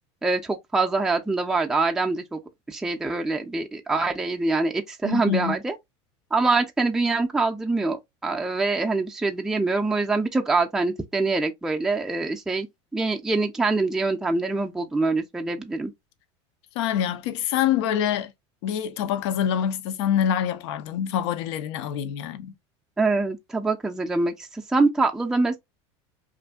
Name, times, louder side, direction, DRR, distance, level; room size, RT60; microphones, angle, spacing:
voice 1, 0.2-2.4 2.7-5.7 6.3-12.7 12.9-15.9 23.0-25.6, right 3 dB, 5° right, 0.4 m, -24 dB
voice 2, 5.0-5.6 16.8-18.3 18.6-22.5, left 9 dB, 75° left, 0.5 m, -25 dB
2.5 x 2.5 x 2.2 m
supercardioid pair, 105°, 15 cm